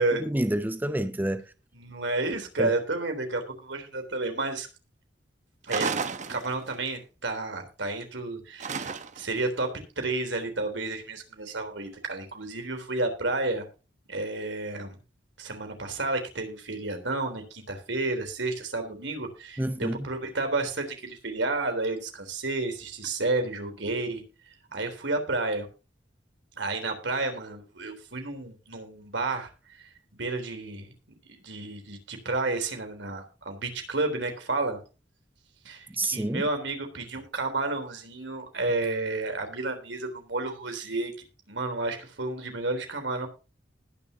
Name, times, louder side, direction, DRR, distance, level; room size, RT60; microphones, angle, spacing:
voice 1, 0.0-1.4 2.6-2.7 19.6-20.0 36.0-36.4, right 1 dB, 10° right, 0.6 m, -28 dB
voice 2, 1.7-4.7 5.6-5.9 6.3-9.7 10.0-13.7 14.1-15.0 15.4-24.2 24.7-25.7 26.6-29.8 30.1-30.9 31.4-34.8 35.7-41.1 41.5-43.3, right 2 dB, 85° right, 3.6 m, -31 dB
sound 1, 5.7-6.9 8.6-9.4, right 5 dB, 40° right, 1.0 m, -32 dB
20.0 x 6.9 x 2.8 m
head